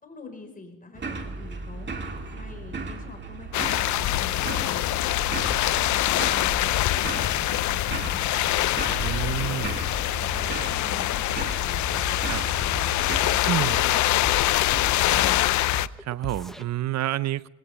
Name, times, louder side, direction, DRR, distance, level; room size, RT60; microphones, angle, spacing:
voice 1, 0.0-1.9 2.3-4.9 5.2-8.7 9.0-9.9 10.2-12.9 13.3-13.8 14.0-15.7, left 3 dB, 30° left, 4.5 m, -44 dB
sound 1, 0.9-13.2, right 3 dB, 35° right, 2.1 m, -36 dB
sound 2, 3.5-15.9, left 15 dB, 70° left, 0.5 m, -24 dB
voice 2, 8.9-9.8 12.3-12.4 13.5-13.8 16.0-17.5, right 14 dB, 60° right, 0.6 m, -29 dB
sound 3, 11.7-16.6, equal, ahead, 0.9 m, -37 dB
19.5 x 17.0 x 3.3 m
cardioid pair, 90°, 30 cm